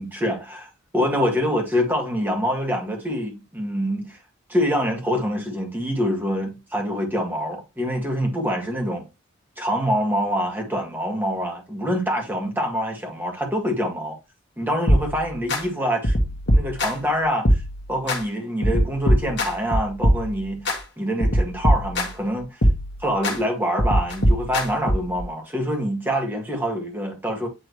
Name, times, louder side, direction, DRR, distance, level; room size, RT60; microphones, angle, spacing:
voice 1, 0.0-4.2 4.5-9.1 9.6-14.2 14.6-16.1 16.5-17.6 17.9-20.7 21.0-22.6 23.0-27.5, equal, 10° right, 2.1 m, -25 dB
sound 1, 14.9-15.6 16.0-17.1 17.5-18.2 18.6-20.8 21.2-22.3 22.6-23.4 23.8-25.2, equal, 55° left, 1.6 m, -22 dB
9.3 x 3.8 x 3.2 m
head